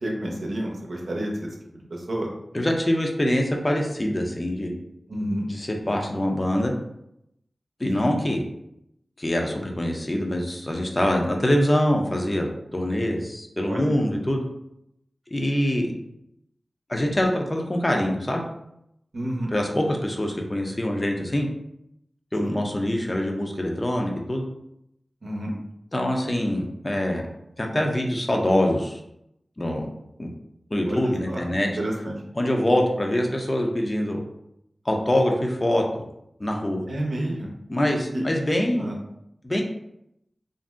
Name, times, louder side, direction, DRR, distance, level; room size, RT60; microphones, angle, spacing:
voice 1, 0.0-1.5 1.7-2.3 5.1-5.5 7.9-8.1 13.7-13.8 19.1-19.5 22.5-22.6 25.2-25.6 30.9-31.4 31.8-32.1 36.9-37.5 38.1-38.2 38.8-39.0, right 1 dB, 75° right, -1 dB, 0.6 m, -29 dB
voice 2, 2.5-4.7 5.5-6.7 7.8-8.4 9.2-14.4 15.3-15.9 16.9-18.4 19.5-21.5 22.3-24.5 25.9-27.3 27.6-29.0 29.6-29.8 30.2-30.3 30.7-31.7 32.4-34.2 34.9-35.8 36.4-36.8 37.7-38.9 39.4-39.6, left 1 dB, 35° left, 1 dB, 0.6 m, -24 dB
2.5 x 2.0 x 3.5 m, 0.80 s
cardioid pair, 40°, 0 cm